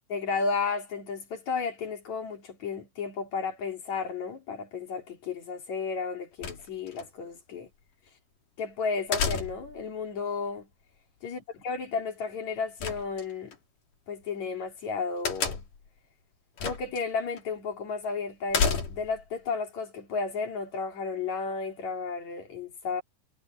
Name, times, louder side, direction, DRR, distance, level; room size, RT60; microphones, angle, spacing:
voice 1, 0.1-7.7 8.6-10.7 11.2-13.6 14.1-15.6 16.6-23.0, left 4 dB, 60° left, 5.0 m, -33 dB
sound 1, 6.4-7.0 9.1-9.8 12.8-13.6 15.2-15.9 16.6-17.0 17.4-17.5 18.5-19.2, left 5 dB, 75° left, 5.0 m, -30 dB
omnidirectional pair, 3.7 m